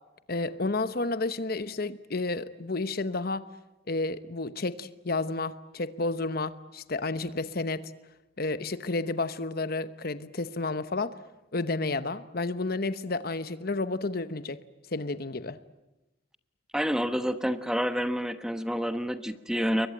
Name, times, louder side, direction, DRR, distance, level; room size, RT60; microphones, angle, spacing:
voice 1, 0.3-3.4 3.9-7.8 8.4-11.1 11.5-14.6 14.9-15.6, left 3 dB, 50° left, 1.0 m, -31 dB
voice 2, 16.7-19.9, equal, 5° right, 1.1 m, -28 dB
29.0 x 23.0 x 9.0 m
head